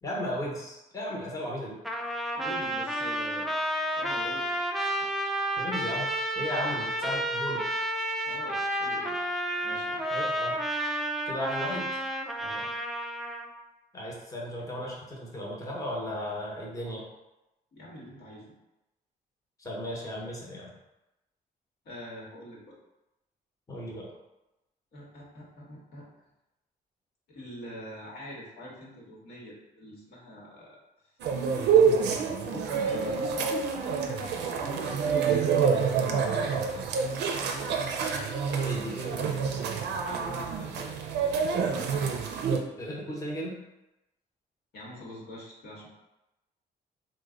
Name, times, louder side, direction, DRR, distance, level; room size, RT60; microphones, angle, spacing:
voice 1, 0.0-1.8 5.6-7.7 10.1-10.6 11.3-11.9 13.9-17.0 19.6-20.7 23.7-24.1 38.6-39.5 42.8-43.5, equal, 20° left, -3 dB, 0.8 m, -35 dB
Trumpet, 1.8-13.5, right 1 dB, ahead, 0.3 m, -31 dB
voice 2, 2.3-3.5 4.0-4.7 5.0-5.1 6.6-6.8 8.3-9.2 9.6-10.0 12.4-12.7 17.7-18.5 21.8-22.7 24.9-26.1 27.3-30.8 31.0-31.1 31.7-32.1 32.4-33.5 34.2-35.6 36.0-36.8 40.0-41.0 44.7-45.9, equal, 75° left, -5 dB, 1.1 m, -44 dB
sound 1, 31.2-42.6, right 6 dB, 85° right, 0.4 m, -27 dB
3.1 x 2.1 x 3.6 m, 0.96 s
cardioid pair, 85°, 17 cm